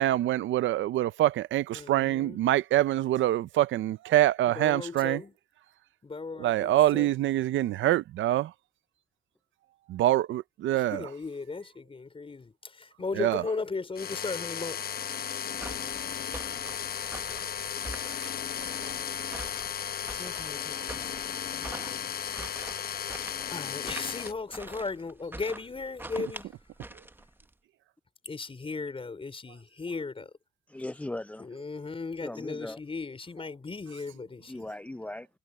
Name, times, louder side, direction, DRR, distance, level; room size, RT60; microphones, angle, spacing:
voice 1, 0.0-5.2 6.4-8.5 9.9-11.0 13.2-13.4 18.2-18.3, right 13 dB, 75° right, 0.6 m, -25 dB
voice 2, 1.7-2.4 4.6-5.3 6.0-7.2 10.8-14.8 20.1-22.1 23.5-26.5 28.3-30.3 31.4-34.7, left 4 dB, 30° left, 5.0 m, -37 dB
sound 1, 13.9-24.3, left 8 dB, 50° left, 0.9 m, -35 dB
sound 2, 15.6-27.5, right 2 dB, 10° right, 0.9 m, -44 dB
voice 3, 30.7-31.5 32.2-32.8 34.5-35.3, left 1 dB, 5° left, 0.4 m, -38 dB
cardioid pair, 90°, 20 cm